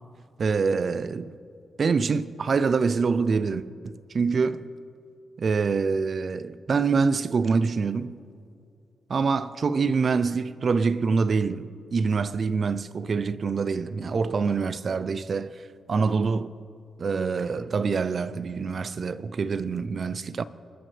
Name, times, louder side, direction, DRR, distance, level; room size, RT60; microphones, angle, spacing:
voice 1, 0.4-1.3 1.8-4.7 5.4-8.2 9.1-15.6 15.9-16.5 17.0-20.4, right 5 dB, 40° right, 0.4 m, -25 dB
23.5 x 12.0 x 3.3 m
wide cardioid pair, 160°, 0 cm